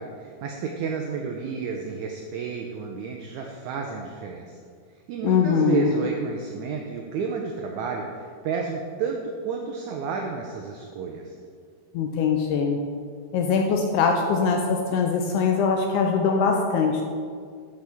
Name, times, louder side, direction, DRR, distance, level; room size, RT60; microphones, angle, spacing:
voice 1, 0.0-4.5 5.1-11.3, right 5 dB, 85° right, 1 dB, 1.6 m, -31 dB
voice 2, 5.2-6.0 11.9-12.8 13.3-17.0, left 5 dB, 85° left, 3 dB, 1.8 m, -22 dB
11.5 x 5.1 x 3.5 m, 2.1 s
omnidirectional pair, 4.0 m